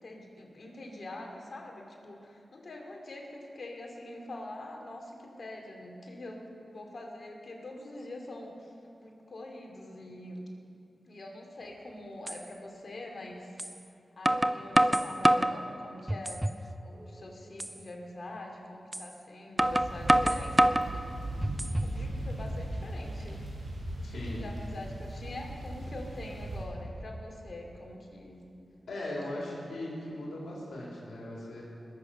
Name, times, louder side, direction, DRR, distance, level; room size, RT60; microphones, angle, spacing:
voice 1, 0.0-8.7 9.0-10.4 11.1-13.5 14.2-16.5 16.8-21.1 21.4-21.5 21.8-23.5 24.0-28.4 29.0-29.4, left 1 dB, 60° left, 1 dB, 2.7 m, -44 dB
sound 1, 11.7-11.8 12.3-12.4 13.6-13.7 14.3-15.6 16.1-16.6 17.0-17.1 17.6-17.8 18.9-19.1 19.6-20.9 21.4-22.0, right 1 dB, 15° right, 0.6 m, -25 dB
sound 2, 19.6-26.6, right 1 dB, 80° right, 3.6 m, -38 dB
voice 2, 24.0-24.5 28.9-31.6, left 1 dB, 85° left, -5 dB, 3.8 m, -38 dB
21.0 x 7.1 x 6.6 m, 2.7 s
cardioid pair, 45°, 0 cm